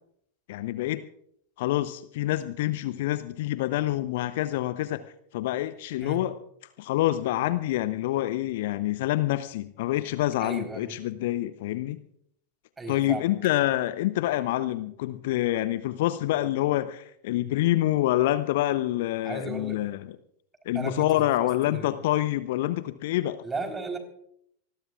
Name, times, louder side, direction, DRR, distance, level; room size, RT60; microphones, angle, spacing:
voice 1, 0.5-1.0 1.6-5.0 5.3-6.3 6.8-12.0 12.9-20.0 20.7-23.4, left 15 dB, 50° left, 14 dB, 0.7 m, -27 dB
voice 2, 10.4-11.0 12.8-13.4 19.2-19.8 20.7-22.0 23.4-24.0, right 3 dB, 15° right, 5 dB, 3.8 m, -35 dB
26.0 x 20.5 x 2.5 m, 0.71 s
figure-of-eight pair, 90°, 0 cm